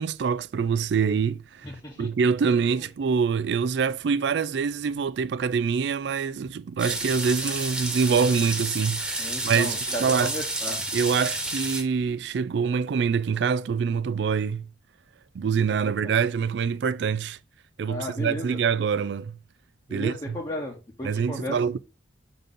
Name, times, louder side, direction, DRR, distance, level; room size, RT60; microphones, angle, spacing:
voice 1, 0.0-1.7 2.0-10.3 10.9-14.7 15.3-17.4 17.8-19.4 19.9-20.4 21.0-21.8, right 6 dB, 65° right, 0.3 m, -25 dB
voice 2, 1.6-2.1 9.2-10.8 15.8-15.9 17.9-18.6 19.9-21.6, left 1 dB, 25° left, 1.0 m, -34 dB
sound 1, 6.8-11.8, right 2 dB, 5° right, 1.2 m, -30 dB
6.7 x 3.9 x 3.7 m
head